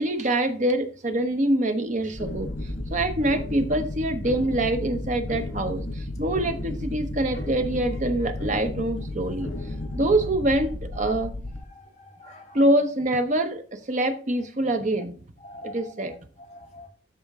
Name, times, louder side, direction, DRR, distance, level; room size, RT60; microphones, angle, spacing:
voice 1, 0.0-2.5 2.9-9.5 9.9-11.3 12.2-15.2 15.6-16.2, right 1 dB, 40° right, 0.9 m, -25 dB
sound 1, 2.1-11.6, left 1 dB, 75° left, 3.5 m, -33 dB
voice 2, 11.7-12.6 15.4-16.1 16.5-16.9, left 1 dB, 35° left, 2.2 m, -44 dB
13.0 x 4.4 x 3.6 m
head